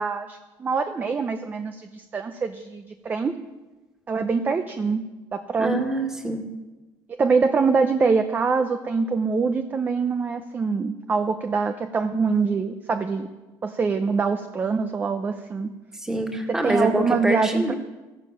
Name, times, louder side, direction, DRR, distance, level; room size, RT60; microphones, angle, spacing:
voice 1, 0.0-3.3 4.1-5.0 5.3-5.8 7.1-13.3 13.6-15.7 16.5-17.7, right 4 dB, 20° right, 8 dB, 0.7 m, -24 dB
voice 2, 5.6-6.4 15.9-17.7, right 1 dB, 5° right, 3 dB, 2.0 m, -25 dB
14.5 x 12.0 x 7.4 m, 1.2 s
cardioid pair, 150°, 8 cm